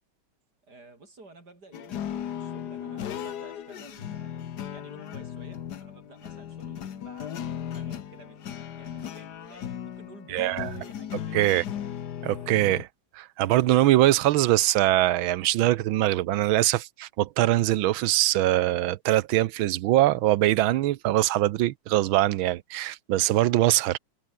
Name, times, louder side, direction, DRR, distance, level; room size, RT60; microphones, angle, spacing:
voice 1, 0.6-11.6, right 2 dB, 50° right, 6.9 m, -52 dB
sound 1, 1.7-12.8, left 9 dB, 55° left, 1.6 m, -36 dB
voice 2, 10.3-10.7 11.3-11.6 12.2-12.9 13.1-24.0, right 15 dB, 80° right, 1.5 m, -22 dB
omnidirectional pair, 2.2 m